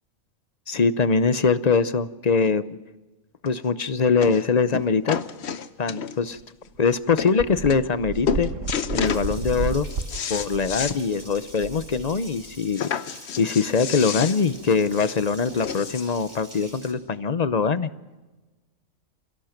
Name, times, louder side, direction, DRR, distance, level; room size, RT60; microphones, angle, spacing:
voice 1, 0.7-2.8 3.4-5.2 5.8-6.4 6.8-8.5 8.9-9.9 10.3-12.9 13.4-17.9, left 5 dB, 40° left, 13 dB, 0.7 m, -22 dB
sound 1, 3.5-3.6 4.2-4.4 4.7-6.3 6.9-7.0 7.2-7.3 7.7-8.0 8.3-9.3 9.7-11.0 11.3-11.4 11.8-11.9 12.7-16.2 17.0-17.1, left 7 dB, 55° left, 1.0 m, -30 dB
sound 2, 6.4-6.5 6.7-6.8 7.4-12.6, right 4 dB, 65° right, 1.4 m, -32 dB
Water tap faucet, 9.0-16.9, right 1 dB, 25° right, 5.5 m, -46 dB
28.5 x 17.0 x 5.9 m, 1.2 s
omnidirectional pair, 1.4 m